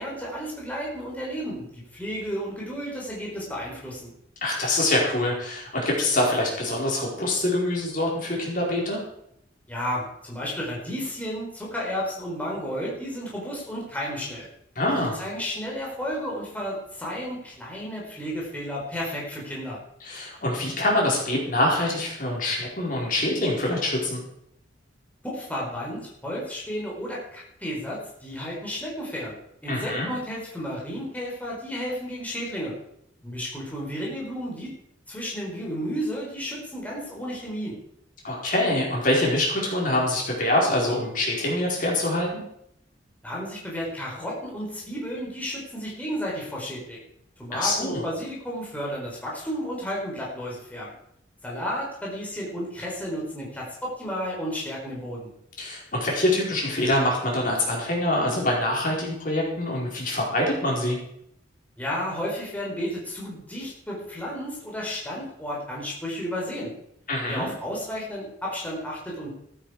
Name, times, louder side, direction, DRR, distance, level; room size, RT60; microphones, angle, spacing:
voice 1, 0.0-4.1 9.7-14.5 15.0-19.8 25.2-29.4 29.6-32.7 33.2-34.7 35.1-37.8 43.2-47.0 47.4-50.9 51.4-55.3 61.8-66.7 67.3-69.3, equal, 10° left, -4 dB, 4.5 m, -32 dB
voice 2, 4.4-9.0 14.7-15.2 20.0-24.2 29.7-30.1 38.2-42.4 47.5-48.0 55.6-61.0 67.1-67.5, left 1 dB, 50° left, -2 dB, 4.7 m, -25 dB
14.5 x 12.0 x 5.0 m, 0.74 s
head